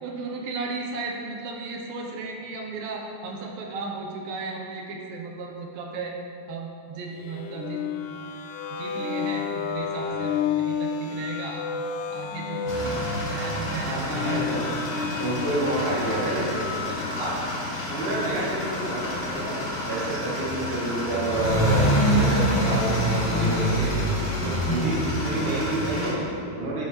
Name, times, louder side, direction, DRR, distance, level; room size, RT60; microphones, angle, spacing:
voice 1, 0.0-6.2 6.5-7.8 8.7-14.8 15.0-16.4 16.8-17.3 21.4-22.2 26.0-26.2, right 4 dB, 80° right, 0 dB, 2.5 m, -36 dB
sound 1, 7.2-17.4, left 6 dB, 80° left, 1.8 m, -31 dB
sound 2, 12.7-26.1, equal, 60° left, 0.7 m, -27 dB
voice 2, 13.8-14.6 15.2-16.6 17.2-17.3 17.9-23.9 24.4-26.8, right 1 dB, 25° right, -7 dB, 1.4 m, -29 dB
11.0 x 9.5 x 3.0 m, 2.4 s
omnidirectional pair, 4.5 m